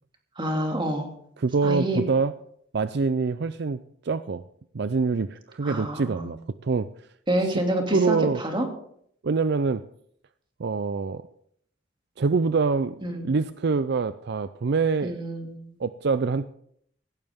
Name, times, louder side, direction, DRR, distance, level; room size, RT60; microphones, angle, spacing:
voice 1, 0.4-1.1 1.6-2.0 5.6-6.3 7.3-8.7 13.0-13.2 15.0-15.8, right 1 dB, 25° right, 2 dB, 2.6 m, -27 dB
voice 2, 1.4-2.3 2.7-4.4 4.7-6.9 7.4-7.6 7.9-8.4 9.2-9.8 10.6-11.2 12.2-13.0 13.2-15.2 15.8-16.5, right 4 dB, 60° right, 13 dB, 0.5 m, -25 dB
17.5 x 16.0 x 3.6 m, 0.68 s
head